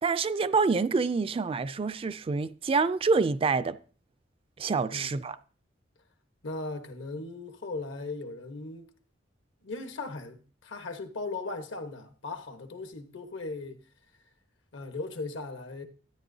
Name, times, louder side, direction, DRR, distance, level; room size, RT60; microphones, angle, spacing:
voice 1, 0.0-3.8 4.6-5.4, right 4 dB, 30° right, 0.3 m, -27 dB
voice 2, 6.4-8.9 9.6-13.8 14.7-15.8, left 3 dB, 75° left, 1.1 m, -38 dB
12.5 x 9.4 x 2.7 m
head